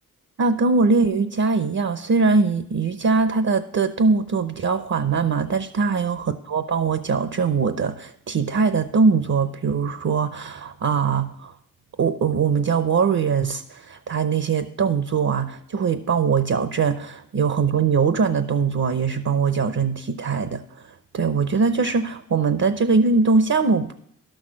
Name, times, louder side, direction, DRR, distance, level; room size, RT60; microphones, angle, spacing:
voice 1, 0.4-11.5 12.0-20.6 21.1-23.9, right 5 dB, 55° right, 10 dB, 0.8 m, -21 dB
11.5 x 6.4 x 6.3 m, 0.66 s
cardioid pair, 55°, 32 cm